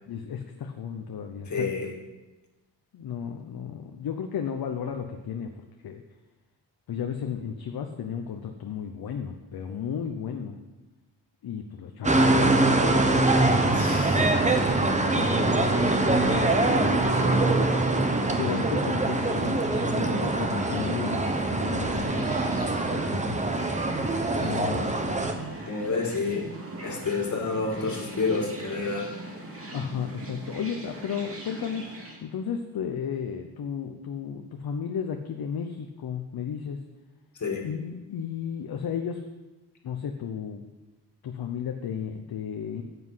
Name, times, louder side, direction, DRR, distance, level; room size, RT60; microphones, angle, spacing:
voice 1, 0.1-1.7 2.9-5.5 5.8-6.0 6.9-10.6 11.4-12.6 15.2-15.8 16.3-17.5 18.3-22.3 22.9-23.4 24.4-24.9 29.7-31.9 32.2-36.8 37.6-39.2 39.8-40.7 41.2-42.8, left 7 dB, 60° left, 5 dB, 0.8 m, -34 dB
voice 2, 1.5-1.9 13.7-14.4 25.7-26.5 26.8-29.1 37.4-37.7, left 4 dB, 45° left, 0 dB, 2.1 m, -29 dB
sound 1, 12.0-25.3, right 2 dB, 15° right, 0.9 m, -23 dB
sound 2, 13.2-32.2, right 2 dB, 35° right, 2.3 m, -39 dB
9.7 x 8.1 x 5.7 m, 1.1 s
wide cardioid pair, 120°, 41 cm